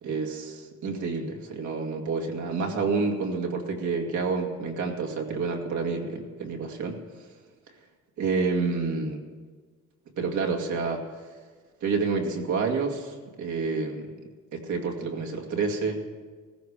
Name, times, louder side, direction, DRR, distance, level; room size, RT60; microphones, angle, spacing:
voice 1, 0.0-7.0 8.2-9.2 10.2-11.1 11.8-14.1 14.5-16.0, right 4 dB, 70° right, 1 dB, 2.3 m, -29 dB
16.0 x 14.5 x 5.0 m, 1.5 s
cardioid pair, 90°, 30 cm